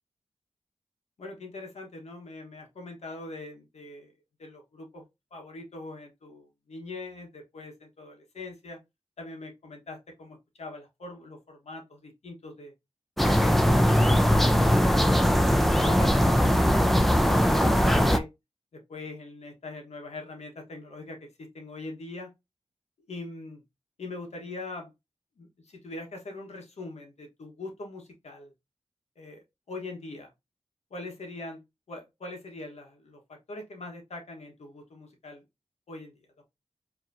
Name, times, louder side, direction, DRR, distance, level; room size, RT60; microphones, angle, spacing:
voice 1, 1.2-4.1 4.4-5.0 5.3-8.8 9.2-12.7 13.2-14.1 15.2-18.3 18.7-22.3 23.0-23.6 24.0-24.9 25.4-28.5 29.2-30.3 30.9-31.6 31.9-35.4 35.9-36.4, left 2 dB, 85° left, 1.2 m, -42 dB
sound 1, 13.2-18.2, equal, ahead, 0.6 m, -21 dB
4.8 x 2.9 x 2.6 m
cardioid pair, 50°, 11 cm